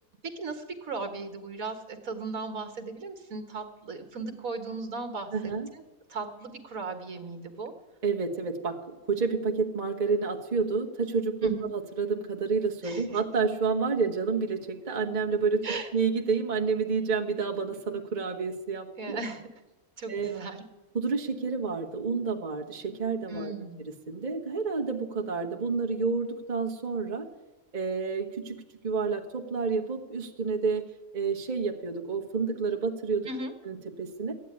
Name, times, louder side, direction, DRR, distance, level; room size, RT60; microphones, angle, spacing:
voice 1, 0.4-5.5 6.1-7.7 11.4-11.7 12.8-13.2 15.6-15.9 19.0-19.5 20.0-20.6 23.3-23.8 33.3-33.5, right 3 dB, 65° right, 7 dB, 1.9 m, -37 dB
voice 2, 5.3-5.7 8.0-8.8 9.1-19.2 20.1-20.4 20.9-23.5 24.1-27.3 27.7-28.6 28.8-30.8 31.1-33.3 33.6-34.3, right 4 dB, 30° right, 1 dB, 1.3 m, -29 dB
14.0 x 9.2 x 9.7 m, 1.1 s
omnidirectional pair, 1.6 m